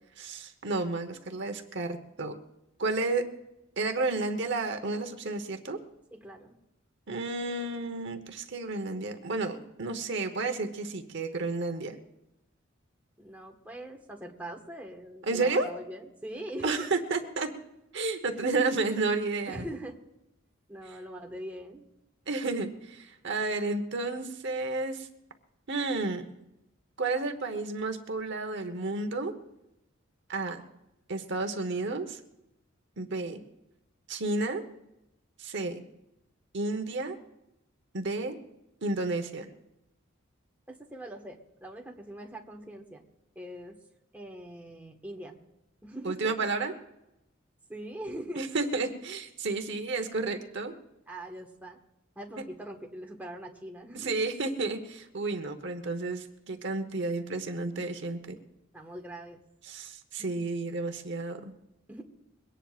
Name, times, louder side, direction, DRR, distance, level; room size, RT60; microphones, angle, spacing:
voice 1, 0.2-2.3 2.8-3.2 3.8-5.8 7.1-12.0 15.3-15.7 16.6-17.5 17.9-19.7 22.3-25.1 25.7-26.3 27.0-29.3 30.3-30.6 31.1-32.2 33.0-33.4 34.1-34.6 35.4-35.8 36.5-37.2 37.9-38.4 38.8-39.5 46.0-46.7 48.4-50.7 53.9-58.3 59.6-61.5, right 3 dB, 55° right, 7 dB, 1.1 m, -31 dB
voice 2, 6.1-6.6 13.2-16.9 18.3-18.6 19.5-20.0 20.7-21.9 40.7-43.0 43.3-43.8 44.1-45.4 45.8-46.3 47.7-48.5 51.1-51.8 52.1-54.2 58.7-59.4 60.2-60.4 61.9-62.0, right 1 dB, 10° right, 0 dB, 1.4 m, -42 dB
22.5 x 18.0 x 2.5 m, 0.89 s
head